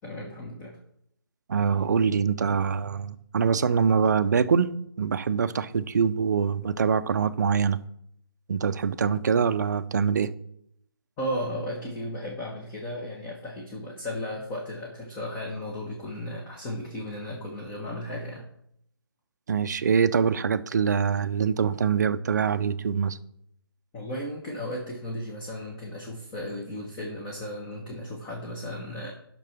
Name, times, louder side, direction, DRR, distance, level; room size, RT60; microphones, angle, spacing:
voice 1, 0.0-0.7 11.2-18.4 23.9-29.1, equal, 15° left, 1.3 m, -35 dB
voice 2, 1.5-4.7 5.0-7.8 8.5-10.3 19.5-23.2, right 6 dB, 45° right, 0.6 m, -24 dB
10.5 x 6.0 x 5.9 m
figure-of-eight pair, 150°, 13 cm